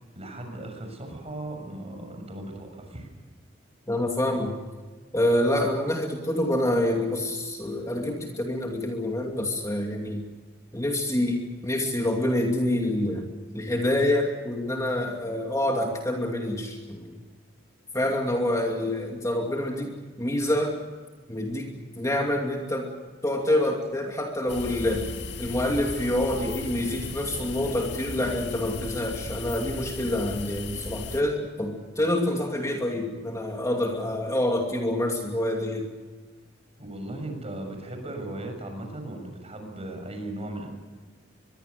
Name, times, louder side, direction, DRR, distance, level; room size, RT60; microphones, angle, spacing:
voice 1, 0.1-3.1 36.8-40.7, right 1 dB, 35° right, 5 dB, 6.6 m, -37 dB
voice 2, 3.9-4.6 5.1-10.2 10.7-17.2 17.9-20.8 21.3-22.9 23.2-25.1 25.4-35.9, left 1 dB, 15° left, 1 dB, 2.6 m, -27 dB
sound 1, 24.5-31.2, left 3 dB, 65° left, 2.2 m, -36 dB
24.5 x 22.5 x 6.7 m, 1.3 s
head